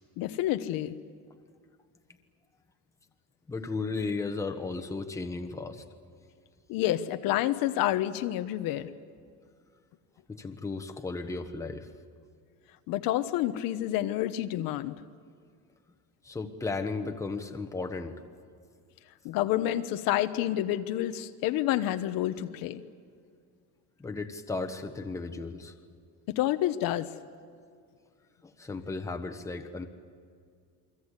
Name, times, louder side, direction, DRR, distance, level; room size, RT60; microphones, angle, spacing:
voice 1, 0.2-0.9 6.7-8.9 12.9-15.0 19.2-22.8 26.3-27.1, left 13 dB, 65° left, 9 dB, 1.1 m, -29 dB
voice 2, 3.5-5.8 10.3-11.9 16.2-18.1 24.0-25.7 28.4-29.9, left 3 dB, 10° left, 5 dB, 1.3 m, -35 dB
29.0 x 23.0 x 8.3 m, 2.2 s
cardioid pair, 170°, 37 cm